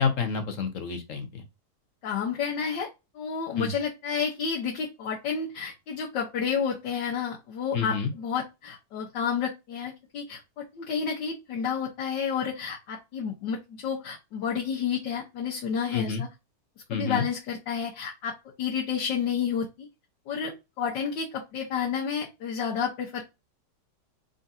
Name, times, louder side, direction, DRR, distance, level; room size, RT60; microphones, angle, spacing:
voice 1, 0.0-1.4 3.6-3.7 7.7-8.1 15.9-16.2 16.9-17.2, left 5 dB, 60° left, 7 dB, 1.0 m, -29 dB
voice 2, 2.0-2.9 3.1-16.3 16.9-19.9 20.3-23.2, left 6 dB, 85° left, -3 dB, 1.6 m, -30 dB
3.8 x 3.8 x 2.6 m, 0.24 s
omnidirectional pair, 1.9 m